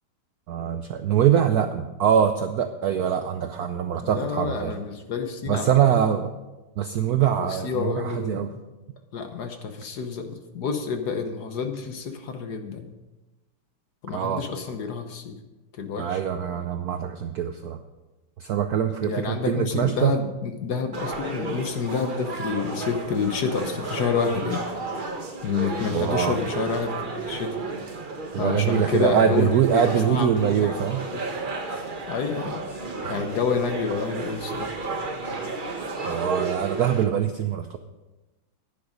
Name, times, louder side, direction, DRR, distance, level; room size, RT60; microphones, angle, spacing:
voice 1, 0.5-4.7 5.5-6.3 6.8-8.5 14.1-14.5 16.0-17.8 18.4-20.1 25.9-26.4 28.3-31.0 33.0-33.2 36.0-37.8, right 9 dB, 75° right, 8 dB, 0.8 m, -23 dB
voice 2, 4.0-6.0 7.4-8.6 9.1-12.9 14.0-15.4 15.7-16.2 19.0-24.6 25.4-27.5 28.4-31.2 32.1-32.6 33.1-34.7, left 5 dB, 60° left, 6 dB, 1.3 m, -29 dB
sound 1, 20.9-37.0, right 3 dB, 30° right, 1.0 m, -33 dB
10.5 x 10.0 x 5.1 m, 1.1 s
omnidirectional pair, 2.3 m